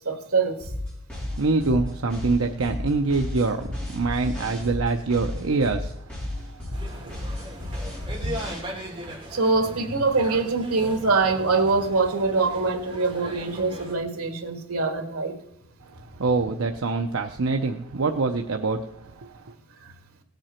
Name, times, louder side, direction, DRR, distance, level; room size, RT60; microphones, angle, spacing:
voice 1, 0.1-0.7 9.3-15.3, right 3 dB, 85° right, 6 dB, 1.7 m, -24 dB
sound 1, 0.6-8.6, left 1 dB, 5° left, 4.4 m, -33 dB
voice 2, 1.1-6.0 6.3-7.1 15.9-19.5, right 3 dB, 65° right, 4 dB, 0.6 m, -25 dB
sound 2, 6.7-14.0, right 1 dB, 25° right, 2.8 m, -39 dB
17.0 x 7.8 x 4.4 m, 0.75 s
head